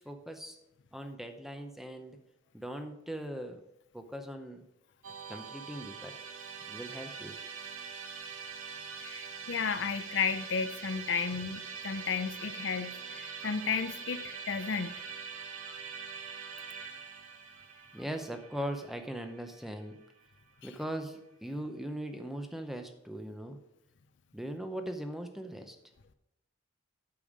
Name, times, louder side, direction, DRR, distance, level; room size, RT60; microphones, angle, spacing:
voice 1, 0.0-0.6 0.9-2.2 2.5-3.6 3.9-4.6 5.3-6.2 6.7-7.4 17.9-20.0 20.6-23.6 24.3-25.8, right 1 dB, ahead, 6 dB, 0.6 m, -40 dB
Musical instrument, 5.0-20.2, right 6 dB, 90° right, 1.1 m, -44 dB
voice 2, 9.0-14.9, left 6 dB, 55° left, 11 dB, 0.5 m, -33 dB
8.6 x 6.9 x 4.9 m, 0.84 s
head